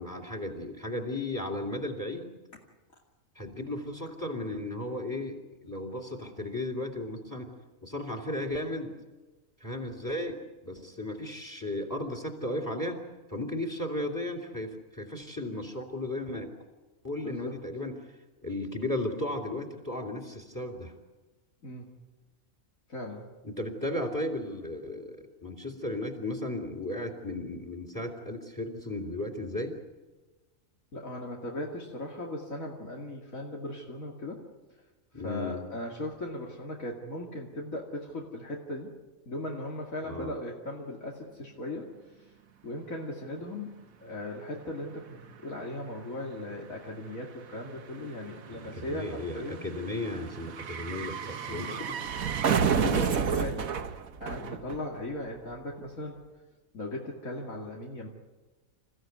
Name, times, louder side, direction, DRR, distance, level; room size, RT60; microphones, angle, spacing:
voice 1, 0.0-2.3 3.3-7.6 7.8-8.9 9.6-13.0 13.3-16.5 17.0-17.9 18.4-20.9 23.4-29.8 35.1-35.6 40.0-40.4 48.8-51.7 52.7-53.1, left 1 dB, 15° left, 4 dB, 3.2 m, -35 dB
voice 2, 17.2-17.6 21.6-22.0 22.9-23.3 30.9-34.5 35.2-38.9 39.3-41.9 42.6-49.7 51.5-51.8 52.4-53.8 54.2-56.2 56.7-58.1, left 1 dB, 70° left, -1 dB, 2.8 m, -38 dB
sound 1, 44.5-44.6 44.8-55.2 55.5-55.6, right 7 dB, 80° right, 1.5 m, -32 dB
28.5 x 15.5 x 9.5 m, 1.2 s
omnidirectional pair, 1.4 m